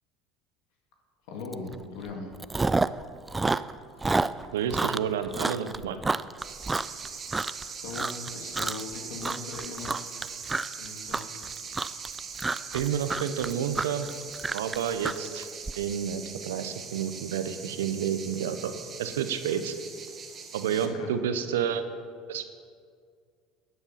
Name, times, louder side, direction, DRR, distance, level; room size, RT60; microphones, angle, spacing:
voice 1, 1.3-2.3 7.8-10.1 10.8-11.3 20.8-21.1, left 3 dB, 75° left, 2 dB, 2.3 m, -39 dB
Chewing mastication, 1.5-1.7 2.0-3.0 3.3-7.6 7.9-8.3 8.5-8.9 9.2-15.7, right 3 dB, 15° right, 0.4 m, -29 dB
voice 2, 4.5-6.0 12.7-14.1 14.5-15.5 15.8-19.7 20.5-21.8 22.3-22.4, right 8 dB, 85° right, 10 dB, 0.7 m, -30 dB
sound 1, 6.4-20.9, right 6 dB, 40° right, 1.6 m, -41 dB
12.5 x 8.0 x 5.7 m, 2.1 s
hypercardioid pair, 80°, 0 cm